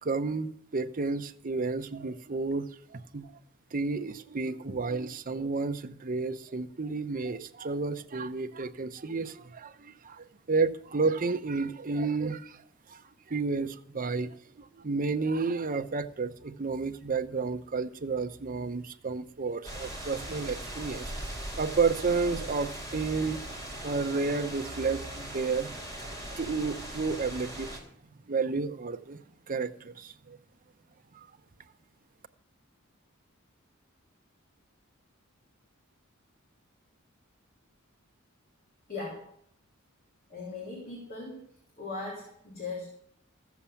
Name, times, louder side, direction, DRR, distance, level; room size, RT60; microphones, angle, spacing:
voice 1, 0.0-3.3 3.7-12.6 12.9-21.1 21.6-25.8 26.3-27.8 28.3-29.2 29.5-30.4 31.1-31.3, right 4 dB, 40° right, 7 dB, 0.7 m, -31 dB
sound 1, 19.6-27.8, right 1 dB, 15° left, 3.1 m, -40 dB
voice 2, 38.9-39.3 40.3-41.4 41.8-42.8, left 3 dB, 45° left, -3 dB, 3.3 m, -38 dB
14.5 x 7.2 x 7.1 m, 0.67 s
head